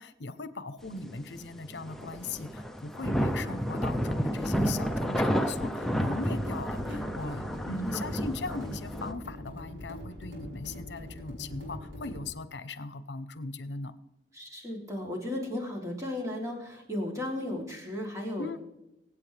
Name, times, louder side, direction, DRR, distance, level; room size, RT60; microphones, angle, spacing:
voice 1, 0.0-13.9 18.4-18.6, left 3 dB, 70° left, 13 dB, 0.8 m, -39 dB
sound 1, 0.9-1.4 1.7-9.1, equal, ahead, 0.7 m, -31 dB
sound 2, 5.7-12.3, left 1 dB, 85° right, 4.5 m, -43 dB
voice 2, 7.8-8.2 14.3-18.6, left 1 dB, 20° right, -1 dB, 3.2 m, -35 dB
24.0 x 8.6 x 3.4 m, 0.89 s
head